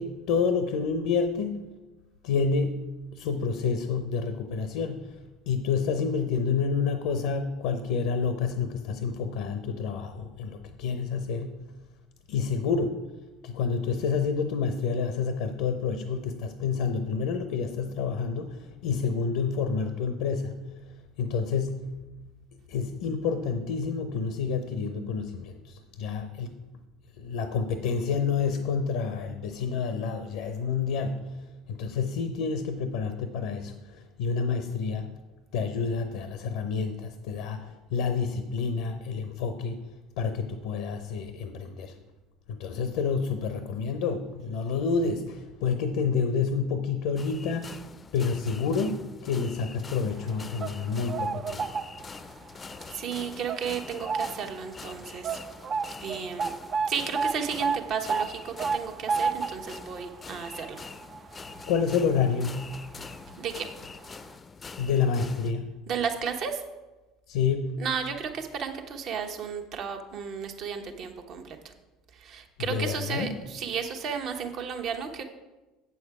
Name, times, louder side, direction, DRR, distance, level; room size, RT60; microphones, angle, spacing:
voice 1, 0.0-1.6 2.2-2.8 3.1-5.1 5.5-11.5 12.3-13.0 13.4-20.6 21.2-21.8 22.7-26.5 27.2-31.3 31.7-35.1 35.5-39.8 40.2-41.9 42.5-47.8 48.1-51.8 61.6-62.6 64.8-65.7 67.3-67.8 72.7-73.3, left 5 dB, 75° left, 9 dB, 0.6 m, -29 dB
sound 1, 47.2-65.5, left 4 dB, 30° left, 0.5 m, -45 dB
sound 2, 50.3-52.3 52.7-52.9 53.5-54.6 54.8-54.9 55.2-62.3 62.6-62.8 63.6-63.7 64.1-64.2, right 5 dB, 40° right, 0.4 m, -31 dB
voice 2, 52.9-55.4 56.0-56.6 56.9-60.8 63.4-63.7 65.9-66.6 67.8-71.6 72.1-75.2, right 6 dB, 55° right, 4 dB, 1.1 m, -33 dB
8.1 x 7.0 x 4.8 m, 1.1 s
hypercardioid pair, 70°, 0 cm